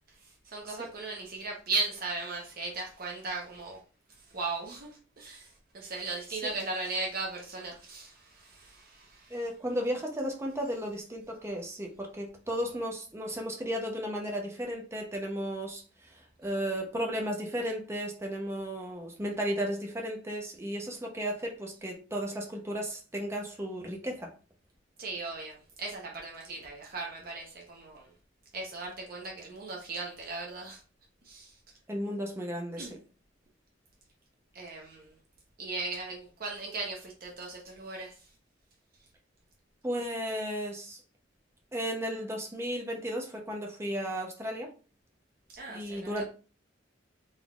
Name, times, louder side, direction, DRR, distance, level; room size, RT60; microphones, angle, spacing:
voice 1, 0.4-3.8 4.3-4.9 5.2-5.5 5.7-9.3 25.0-28.1 28.5-30.8 31.3-31.5 32.8-32.9 34.5-35.1 35.6-38.1 45.5-46.2, right 3 dB, 50° right, 0.8 m, -37 dB
voice 2, 9.3-24.3 31.9-33.0 39.8-41.0 41.7-44.7 45.7-46.2, equal, 15° right, 0.6 m, -34 dB
3.9 x 3.7 x 2.3 m
head